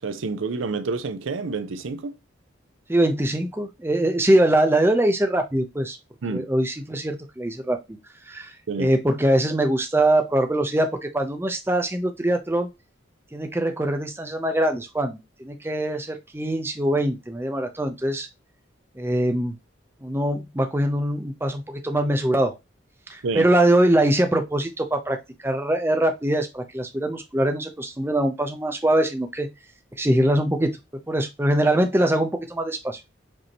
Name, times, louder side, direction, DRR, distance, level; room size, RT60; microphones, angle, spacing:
voice 1, 0.0-2.1 6.2-6.5 8.7-8.9 23.2-23.5, right 4 dB, 80° right, 0.5 m, -28 dB
voice 2, 2.9-6.0 6.3-8.0 8.3-8.5 8.8-12.7 13.3-18.3 19.0-19.5 20.0-22.6 23.1-29.5 30.0-30.8 31.1-33.0, right 1 dB, 10° right, 0.5 m, -23 dB
5.3 x 2.8 x 2.8 m
head